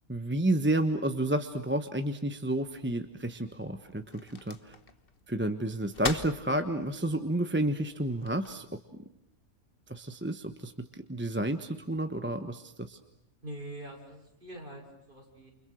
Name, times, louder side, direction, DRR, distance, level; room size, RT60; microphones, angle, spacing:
voice 1, 0.1-4.7 5.3-8.7 8.9-9.0 9.9-13.0, right 1 dB, 10° right, 7 dB, 1.1 m, -31 dB
sound 1, 2.5-8.5, left 4 dB, 40° left, 1.5 m, -43 dB
voice 2, 13.4-15.5, right 1 dB, 35° right, 0 dB, 6.8 m, -44 dB
29.0 x 29.0 x 6.4 m, 0.78 s
omnidirectional pair, 1.5 m